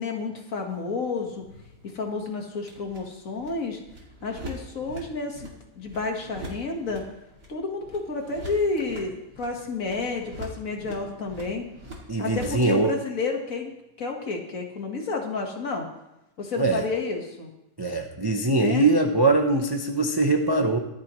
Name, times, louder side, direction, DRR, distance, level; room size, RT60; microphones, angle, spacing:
voice 1, 0.0-1.4 1.8-3.8 4.2-7.1 7.5-11.6 12.2-13.7 14.0-15.9 16.4-17.5 18.5-18.9, left 4 dB, 55° left, 2 dB, 2.0 m, -30 dB
sound 1, 0.7-12.7, right 1 dB, 90° right, 3.2 m, -44 dB
voice 2, 12.1-12.9 16.6-16.8 17.8-20.8, right 2 dB, 25° right, 3 dB, 0.6 m, -22 dB
23.5 x 8.0 x 3.1 m, 0.91 s
omnidirectional pair, 1.7 m